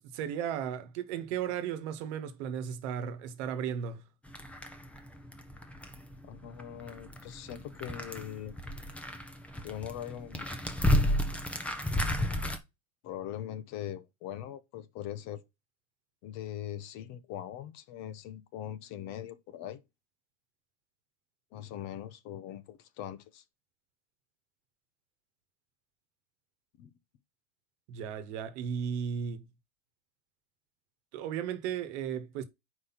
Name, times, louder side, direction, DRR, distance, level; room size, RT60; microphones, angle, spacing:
voice 1, 0.0-4.0 27.9-29.5 31.1-32.4, right 8 dB, 60° right, 1.3 m, -35 dB
sound 1, 4.3-12.6, left 1 dB, 5° left, 0.8 m, -33 dB
voice 2, 6.3-8.5 9.6-10.5 13.0-15.4 16.2-19.8 21.5-23.4 26.8-26.9, left 11 dB, 45° left, 0.9 m, -41 dB
5.0 x 4.1 x 5.8 m
supercardioid pair, 125°, 40 cm